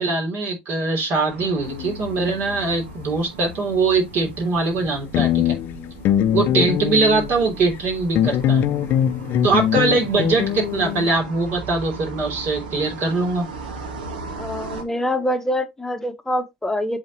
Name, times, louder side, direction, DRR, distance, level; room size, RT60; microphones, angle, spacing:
voice 1, 0.0-5.5 6.3-8.7 9.4-13.5, right 3 dB, 50° right, 3.3 m, -22 dB
sound 1, 1.3-14.8, right 3 dB, 85° right, 1.6 m, -37 dB
doodling nonusb, 1.6-1.9 4.9-5.0 5.1-7.5 8.2-11.1, left 10 dB, 50° left, 0.6 m, -22 dB
voice 2, 14.4-17.0, left 1 dB, 10° left, 1.1 m, -25 dB
7.9 x 4.2 x 3.0 m
hypercardioid pair, 80°, 5 cm